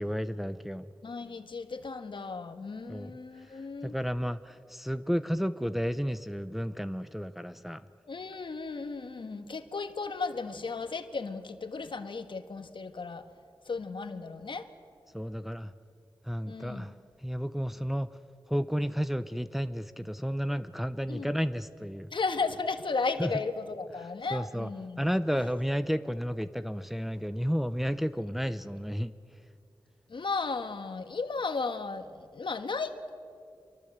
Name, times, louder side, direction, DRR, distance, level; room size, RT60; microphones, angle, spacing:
voice 1, 0.0-0.9 2.9-3.1 3.8-7.8 15.1-15.7 16.2-16.9 17.2-18.1 18.5-22.1 23.2-23.3 24.3-24.7 25.0-29.1, equal, ahead, 11 dB, 0.7 m, -32 dB
voice 2, 1.0-3.9 8.1-13.2 13.6-14.7 16.5-16.9 21.1-21.3 22.1-25.1 30.1-33.1, left 4 dB, 70° left, 8 dB, 1.5 m, -35 dB
26.5 x 23.5 x 7.9 m, 2.4 s
wide cardioid pair, 90°, 9 cm